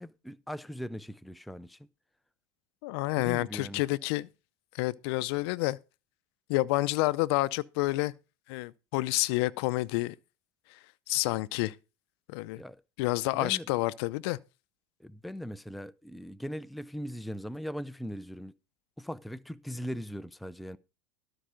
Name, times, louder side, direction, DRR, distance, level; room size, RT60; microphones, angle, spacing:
voice 1, 0.0-1.9 3.2-3.8 12.6-12.8 13.3-13.7 15.0-18.5 19.0-20.8, equal, ahead, 0.5 m, -39 dB
voice 2, 2.8-4.3 4.7-5.8 6.5-8.1 8.5-10.1 11.1-11.7 12.3-12.6 13.0-14.4, left 20 dB, 70° left, 0.6 m, -29 dB
12.5 x 4.8 x 6.4 m
supercardioid pair, 110°, 14 cm